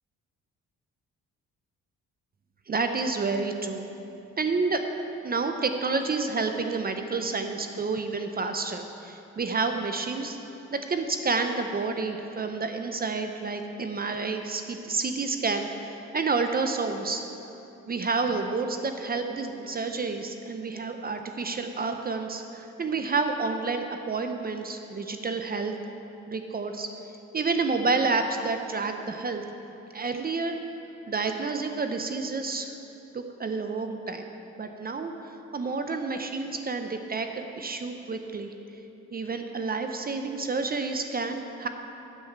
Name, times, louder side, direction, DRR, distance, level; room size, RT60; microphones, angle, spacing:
voice 1, 2.7-3.9 4.4-4.8 5.2-10.4 10.7-17.2 17.9-25.7 26.3-26.9 27.3-29.4 29.9-30.6 31.1-32.7 33.1-34.3 34.6-38.5 39.1-41.7, right 4 dB, 30° right, 6 dB, 0.6 m, -29 dB
7.8 x 7.6 x 5.8 m, 2.9 s
cardioid pair, 90°, 30 cm